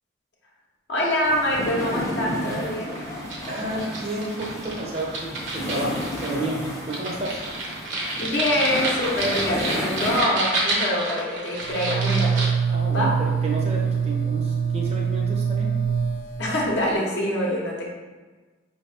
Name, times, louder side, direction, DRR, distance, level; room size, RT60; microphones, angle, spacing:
voice 1, 0.9-3.0 8.2-12.5 12.9-13.1 16.4-17.9, left 1 dB, 55° left, -4 dB, 0.7 m, -25 dB
sound 1, 1.2-10.2, left 1 dB, 15° left, 0.5 m, -33 dB
sound 2, 1.9-12.5, right 2 dB, 70° right, 0.9 m, -31 dB
voice 2, 3.5-7.5 12.7-15.7, right 1 dB, 30° right, -2 dB, 0.6 m, -31 dB
sound 3, 11.6-16.9, right 6 dB, 85° left, 0.8 m, -24 dB
5.2 x 2.8 x 3.3 m, 1.3 s
head